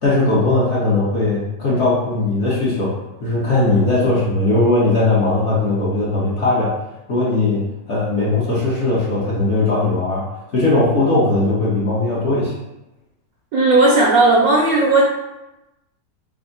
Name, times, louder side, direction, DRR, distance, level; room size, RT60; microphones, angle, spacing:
voice 1, 0.0-6.7 7.1-10.2 10.5-12.5, left 2 dB, 50° left, -8 dB, 1.0 m, -18 dB
voice 2, 13.5-15.0, right 2 dB, 65° right, -4 dB, 0.9 m, -14 dB
3.4 x 2.0 x 3.8 m, 0.95 s
omnidirectional pair, 2.0 m